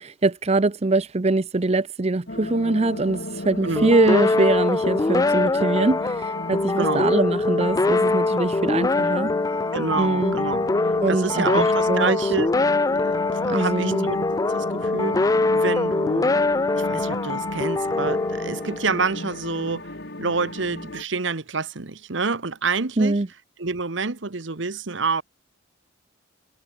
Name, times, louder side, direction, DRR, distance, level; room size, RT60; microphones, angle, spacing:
voice 1, 0.0-9.3 9.9-10.4 11.0-12.3 13.5-14.1 23.0-23.3, right 2 dB, 30° right, 0.6 m, -23 dB
sound 1, 2.3-21.0, left 1 dB, 55° left, 4.1 m, -34 dB
sound 2, 3.8-19.1, left 3 dB, 15° left, 0.3 m, -23 dB
voice 2, 9.7-10.7 11.1-12.5 13.0-14.2 14.5-16.3 16.7-19.9 20.2-23.1 23.6-25.2, right 4 dB, 65° right, 1.2 m, -27 dB
head